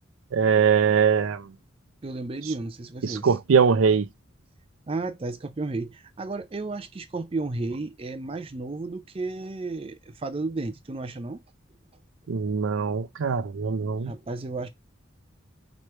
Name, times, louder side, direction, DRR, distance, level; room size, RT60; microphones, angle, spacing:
voice 1, 0.3-1.5 3.0-4.1 12.3-14.1, right 6 dB, 85° right, 0.5 m, -22 dB
voice 2, 2.0-3.3 4.9-11.4 14.0-14.7, right 3 dB, 25° right, 0.4 m, -33 dB
3.2 x 3.1 x 4.3 m
head